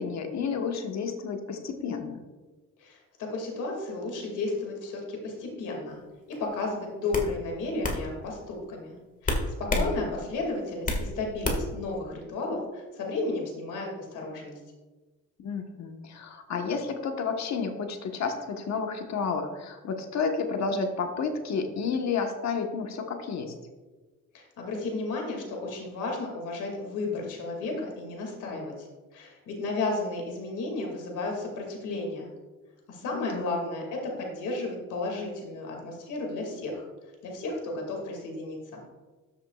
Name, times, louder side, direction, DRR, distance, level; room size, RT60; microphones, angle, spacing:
voice 1, 0.0-2.2 9.8-10.0 15.4-23.5 33.1-33.6, left 5 dB, 65° left, 4 dB, 1.3 m, -31 dB
voice 2, 2.8-6.0 6.3-9.0 9.2-14.6 24.3-28.9 29.1-32.3 32.9-36.8 37.2-38.8, left 3 dB, 85° left, 1 dB, 2.4 m, -33 dB
sound 1, 6.3-6.5 7.1-7.3 7.8-8.0 9.2-9.9 10.3-11.1 11.4-11.8, left 2 dB, 25° left, 1.9 m, -27 dB
13.5 x 7.3 x 2.4 m, 1.3 s
cardioid pair, 90°, 30 cm